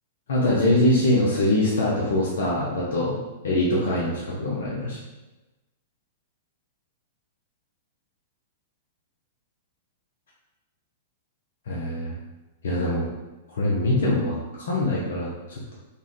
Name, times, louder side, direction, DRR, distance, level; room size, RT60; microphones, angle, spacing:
voice 1, 0.3-3.2 3.4-5.0 11.7-12.1 12.6-13.1 13.5-15.7, left 1 dB, 70° left, -5 dB, 0.8 m, -23 dB
4.1 x 2.4 x 3.7 m, 1.1 s
hypercardioid pair, 110°, 0 cm